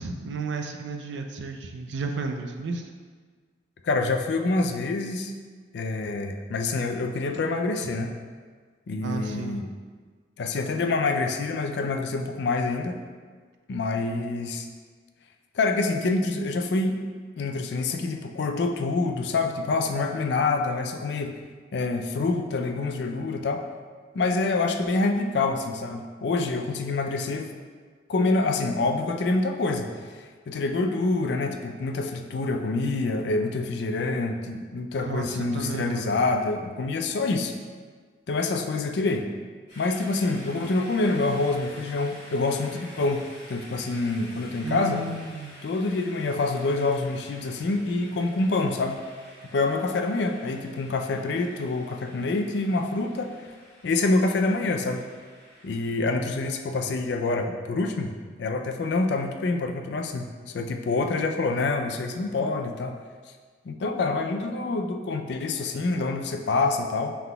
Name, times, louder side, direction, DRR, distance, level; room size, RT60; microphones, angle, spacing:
voice 1, 0.0-2.8 9.0-9.6 34.9-36.1 44.6-45.6, right 3 dB, 70° right, 4 dB, 0.4 m, -33 dB
voice 2, 3.8-5.3 5.7-8.1 8.9-9.7 10.4-13.0 13.7-14.7 15.6-17.0 17.4-21.3 21.7-23.6 24.1-27.5 28.1-37.5 38.3-39.3 39.8-45.0 45.6-49.0 49.5-53.3 53.8-55.0 55.6-62.9 63.7-67.2, left 3 dB, 65° left, 5 dB, 0.4 m, -26 dB
sound 1, 39.7-55.9, left 1 dB, 30° left, 1.5 m, -49 dB
5.8 x 3.5 x 2.2 m, 1.5 s
head